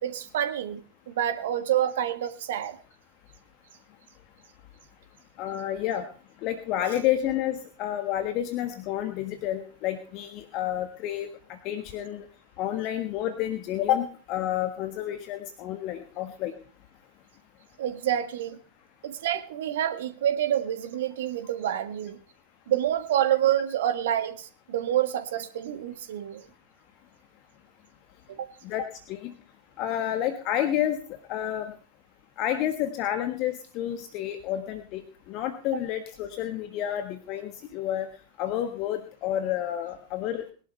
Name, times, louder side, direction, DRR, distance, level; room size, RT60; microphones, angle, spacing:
voice 1, 0.0-0.8 1.1-2.8 17.8-18.6 19.0-22.2 22.7-26.5 28.4-28.5 35.7-35.8, right 11 dB, 60° right, 10 dB, 1.5 m, -27 dB
voice 2, 5.4-6.1 6.4-12.2 12.6-16.5 28.6-29.3 29.8-31.0 31.3-31.7 32.4-35.0 35.3-38.1 38.4-40.4, left 11 dB, 40° left, 8 dB, 1.4 m, -30 dB
21.5 x 11.5 x 3.3 m, 0.38 s
figure-of-eight pair, 90°, 0 cm